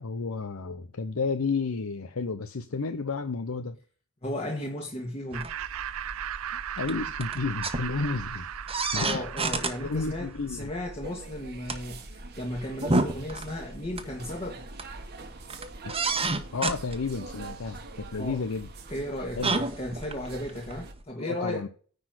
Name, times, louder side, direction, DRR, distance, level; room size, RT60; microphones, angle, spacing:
voice 1, 0.0-3.8 6.5-8.5 8.9-9.2 9.8-10.7 15.8-16.0 16.5-18.7 19.4-19.6 21.2-21.7, left 4 dB, 90° left, 0.7 m, -32 dB
voice 2, 4.2-5.5 8.9-14.6 18.2-18.4 18.9-21.6, left 1 dB, 30° left, 1.6 m, -35 dB
sound 1, 5.3-21.0, right 3 dB, 30° right, 1.2 m, -33 dB
Laughter, 5.3-10.6, right 10 dB, 80° right, 0.5 m, -37 dB
sound 2, 11.0-20.9, right 4 dB, 50° right, 1.4 m, -46 dB
10.0 x 4.1 x 6.1 m
head